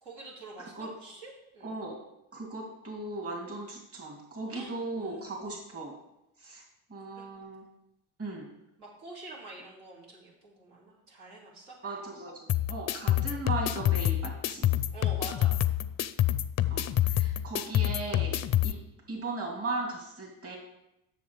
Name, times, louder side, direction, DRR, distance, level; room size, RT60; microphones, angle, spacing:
voice 1, 0.0-1.7 4.5-5.5 7.1-7.3 8.8-11.8 14.9-15.6, right 2 dB, 75° right, -6 dB, 3.0 m, -46 dB
voice 2, 0.6-0.9 1.6-2.0 2.3-5.9 6.4-6.6 6.9-7.6 8.2-8.5 11.8-14.7 16.7-18.4 18.6-18.8 19.1-20.6, right 2 dB, 35° right, -2 dB, 2.8 m, -37 dB
sound 1, 12.5-18.7, left 12 dB, 40° left, 0.5 m, -27 dB
7.2 x 6.6 x 4.8 m, 0.85 s
hypercardioid pair, 60°, 42 cm